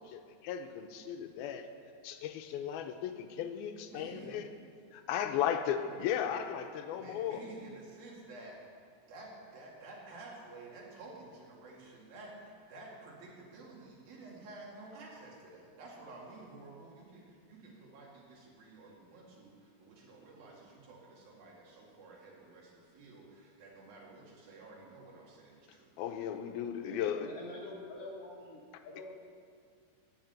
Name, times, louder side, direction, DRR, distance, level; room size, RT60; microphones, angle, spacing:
voice 1, 0.0-1.7 2.0-4.5 4.9-7.4 26.0-27.3, left 9 dB, 85° left, 7 dB, 2.6 m, -36 dB
voice 2, 3.8-4.4 5.8-6.0 6.9-8.6 9.1-25.9, right 2 dB, 70° right, -3 dB, 4.1 m, -51 dB
voice 3, 26.8-29.1, left 2 dB, 50° left, -3 dB, 2.0 m, -46 dB
14.0 x 7.5 x 9.1 m, 2.2 s
omnidirectional pair, 4.4 m